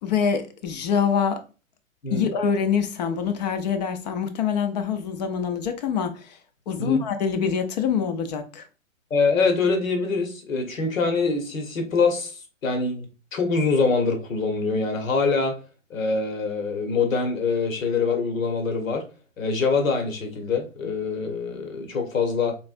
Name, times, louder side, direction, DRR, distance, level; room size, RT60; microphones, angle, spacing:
voice 1, 0.0-1.4 2.1-6.4 6.7-8.7, left 7 dB, 30° left, 0.6 m, -25 dB
voice 2, 9.1-12.3 12.6-15.6 15.9-19.0 19.4-22.6, left 4 dB, 75° left, 1.3 m, -24 dB
4.5 x 3.1 x 2.5 m
hypercardioid pair, 130°, 41 cm